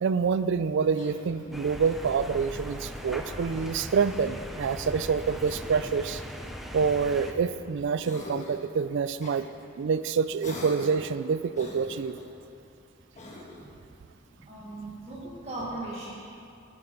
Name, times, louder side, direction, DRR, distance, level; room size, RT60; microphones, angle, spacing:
voice 1, 0.0-6.2 6.7-9.5 9.8-12.2, right 5 dB, 65° right, 13 dB, 0.4 m, -27 dB
Cough, 0.9-1.7 3.1-4.2 5.4-6.0 6.8-7.6 8.0-8.7 9.2-9.4 10.4-11.1 11.5-12.3 13.1-13.7, left 2 dB, 40° left, 1.4 m, -44 dB
sound 1, 1.5-7.3, equal, ahead, 0.6 m, -39 dB
voice 2, 14.0-16.1, right 2 dB, 35° right, -7 dB, 1.4 m, -38 dB
10.5 x 8.2 x 5.4 m, 2.5 s
head